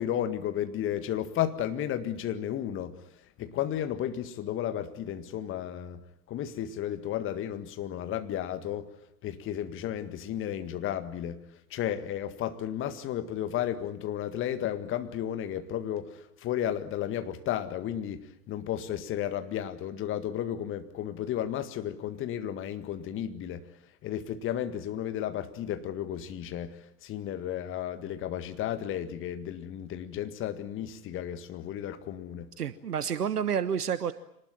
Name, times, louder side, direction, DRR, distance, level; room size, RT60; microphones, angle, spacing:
voice 1, 0.0-3.1 3.4-8.9 9.2-11.4 11.7-23.7 24.0-32.5, left 10 dB, 25° left, 1.8 m, -33 dB
voice 2, 32.6-34.1, right 8 dB, 70° right, 1.2 m, -29 dB
25.5 x 19.5 x 9.0 m
figure-of-eight pair, 100°, 48 cm